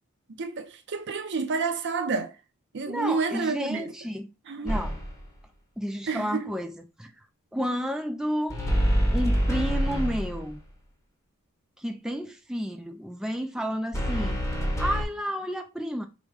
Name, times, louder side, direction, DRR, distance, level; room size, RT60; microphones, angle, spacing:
voice 1, 0.3-2.4 2.7-3.9 4.5-4.8 6.1-6.5, right 4 dB, 55° right, 0.6 m, -29 dB
voice 2, 2.9-4.3 4.6-5.0 5.8-6.7 7.0-7.1 7.5-8.6 9.1-10.6 11.8-14.4 14.8-16.1, equal, 5° right, 0.3 m, -31 dB
sound 1, 4.7-5.3 8.5-10.6 13.9-15.0, equal, 15° left, 0.9 m, -26 dB
4.9 x 2.2 x 4.7 m
head